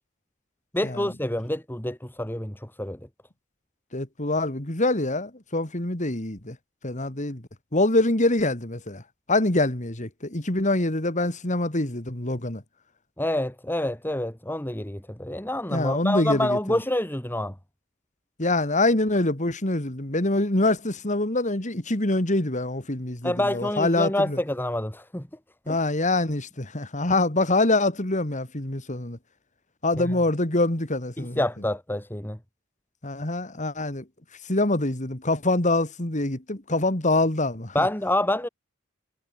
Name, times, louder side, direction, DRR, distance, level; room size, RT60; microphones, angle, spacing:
voice 1, 0.7-3.0 13.2-17.5 23.2-25.3 25.7-25.8 30.0-30.2 31.2-32.4 37.7-38.5, left 1 dB, 10° left, 2.3 m, -27 dB
voice 2, 3.9-6.6 6.8-7.4 7.7-9.0 9.3-12.6 15.7-16.8 18.4-24.4 25.7-29.2 29.8-31.4 33.0-34.0 34.5-37.9, left 2 dB, 35° left, 2.7 m, -25 dB
head